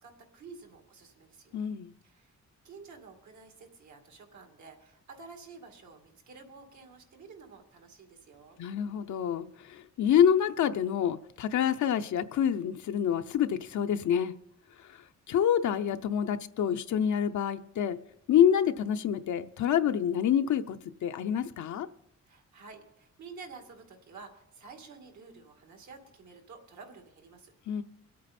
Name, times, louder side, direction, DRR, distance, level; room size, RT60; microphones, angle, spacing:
voice 1, 0.0-1.6 2.0-2.3 2.6-8.6 22.3-27.5, right 4 dB, 75° right, 4 dB, 2.3 m, -50 dB
voice 2, 1.5-1.9 8.6-14.3 15.3-18.0 18.3-21.9 27.7-27.8, left 9 dB, 80° left, 7 dB, 0.7 m, -27 dB
25.0 x 8.5 x 4.3 m, 0.79 s
wide cardioid pair, 150°, 29 cm